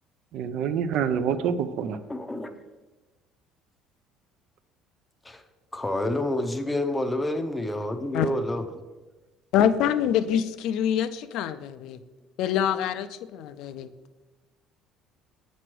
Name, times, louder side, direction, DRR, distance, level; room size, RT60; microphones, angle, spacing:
voice 1, 0.3-2.0, right 7 dB, 65° right, 12 dB, 0.4 m, -26 dB
voice 2, 2.1-2.5 5.2-5.4 5.7-8.6, left 1 dB, 10° left, 7 dB, 0.6 m, -28 dB
voice 3, 9.5-12.0 12.4-13.9, left 9 dB, 70° left, 12 dB, 0.4 m, -25 dB
7.9 x 3.1 x 6.0 m, 1.2 s
cardioid pair, 130°, 0 cm